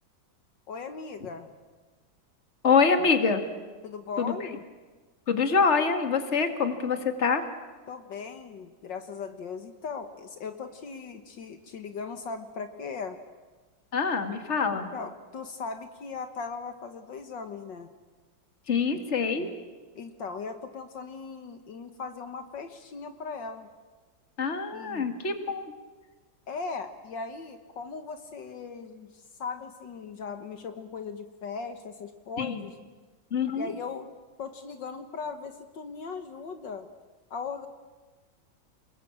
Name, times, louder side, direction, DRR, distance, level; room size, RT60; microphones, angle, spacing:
voice 1, 0.7-1.5 3.8-4.6 7.9-13.2 14.7-17.9 20.0-23.7 24.7-25.1 26.5-32.8 33.5-34.1 34.4-36.9 37.3-37.7, left 5 dB, 70° left, 8 dB, 2.0 m, -38 dB
voice 2, 2.6-3.4 4.2-4.3 5.3-7.4 13.9-14.9 18.7-19.5 24.4-25.6 32.4-32.6 33.3-33.7, left 5 dB, 35° left, 7 dB, 2.2 m, -25 dB
29.5 x 21.0 x 8.8 m, 1.3 s
omnidirectional pair, 2.1 m